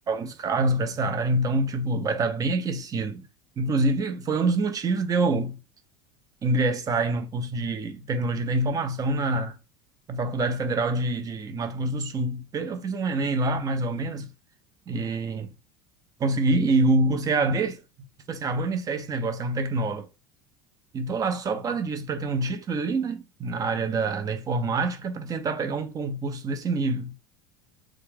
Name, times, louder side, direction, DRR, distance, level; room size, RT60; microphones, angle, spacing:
voice 1, 0.1-3.3 3.6-5.6 6.4-9.6 10.1-14.3 14.9-15.5 16.2-17.8 18.3-20.1 20.9-27.1, right 2 dB, 30° right, 0.6 m, -26 dB
3.1 x 2.3 x 3.4 m
figure-of-eight pair, 70°, 13 cm